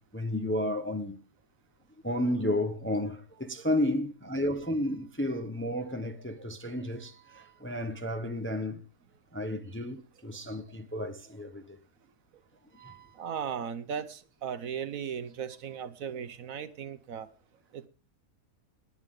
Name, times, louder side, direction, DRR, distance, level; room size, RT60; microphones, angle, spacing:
voice 1, 0.1-1.2 2.0-8.8 9.3-11.8 12.7-13.1, left 1 dB, 10° left, 0.7 m, -32 dB
voice 2, 13.1-17.3 17.7-17.9, right 7 dB, 65° right, 1.1 m, -37 dB
19.5 x 8.7 x 3.7 m
omnidirectional pair, 1.7 m